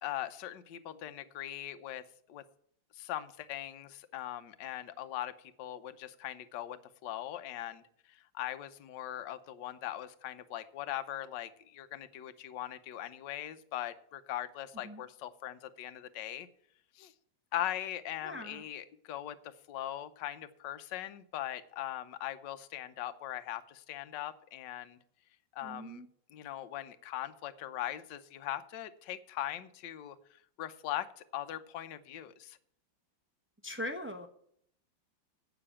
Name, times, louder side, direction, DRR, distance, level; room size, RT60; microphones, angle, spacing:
voice 1, 0.0-2.0 2.3-2.4 2.9-7.8 8.1-16.5 17.0-17.1 17.5-25.0 25.5-26.0 26.3-30.2 30.6-32.6, left 12 dB, 70° left, 11 dB, 1.4 m, -40 dB
voice 2, 18.2-18.6 25.6-26.1 33.6-34.3, left 1 dB, 20° right, 5 dB, 0.3 m, -40 dB
8.7 x 7.0 x 8.5 m, 0.67 s
omnidirectional pair, 2.1 m